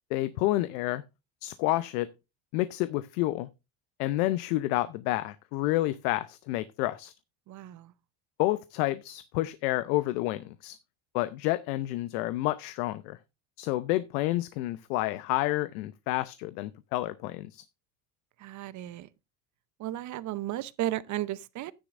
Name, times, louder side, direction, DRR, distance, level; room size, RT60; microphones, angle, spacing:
voice 1, 0.1-1.0 1.4-2.1 2.5-3.5 4.0-7.1 8.4-10.8 11.1-13.2 13.6-17.6, left 17 dB, 80° left, 0.8 m, -29 dB
voice 2, 7.5-7.9 18.4-19.1 19.8-21.7, right 14 dB, 40° right, 0.8 m, -34 dB
11.5 x 10.0 x 2.5 m
supercardioid pair, 125°, 45 cm